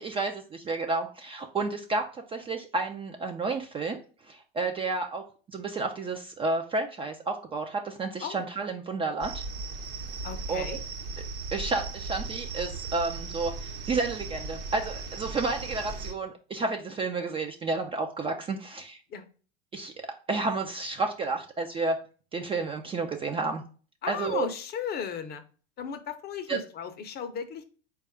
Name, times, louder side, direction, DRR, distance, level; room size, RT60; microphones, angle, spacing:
voice 1, 0.0-5.2 5.5-9.4 10.5-10.8 11.5-19.0 19.7-22.0 22.3-23.6 24.1-24.5 26.5-26.6, right 3 dB, 20° right, 4 dB, 0.3 m, -31 dB
sound 1, 9.2-16.1, right 4 dB, 50° right, 0.9 m, -37 dB
voice 2, 10.2-10.8 19.1-19.2 24.0-25.4 25.8-27.6, left 7 dB, 30° left, 9 dB, 0.6 m, -35 dB
4.1 x 2.3 x 4.6 m, 0.39 s
hypercardioid pair, 95°, 30 cm